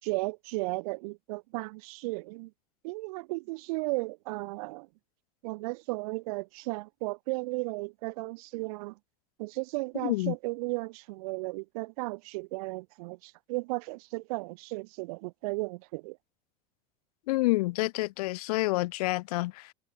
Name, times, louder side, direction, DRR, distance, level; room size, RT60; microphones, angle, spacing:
voice 1, 0.0-2.5 2.8-4.9 5.4-9.0 9.4-16.2, right 25 dB, 70° right, 3.0 m, -35 dB
voice 2, 10.0-10.3 17.3-19.7, left 20 dB, 75° left, 2.1 m, -28 dB
hypercardioid pair, 90°, 19 cm